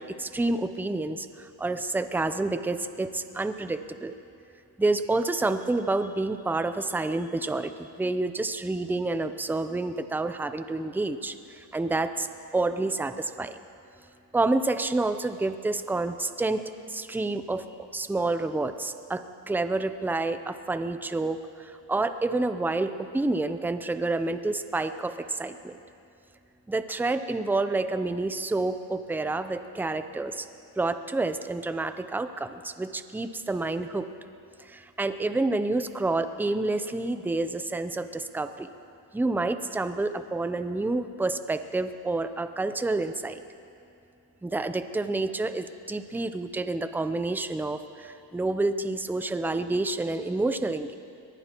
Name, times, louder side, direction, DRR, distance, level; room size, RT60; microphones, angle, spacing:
voice 1, 0.0-4.1 4.8-12.3 12.5-13.6 14.3-16.6 16.9-25.8 26.7-30.5 30.8-34.1 34.6-38.7 39.1-43.4 44.4-50.9, right 2 dB, 5° right, 10 dB, 0.5 m, -29 dB
23.0 x 19.0 x 3.0 m, 2.6 s
cardioid pair, 85°, 49 cm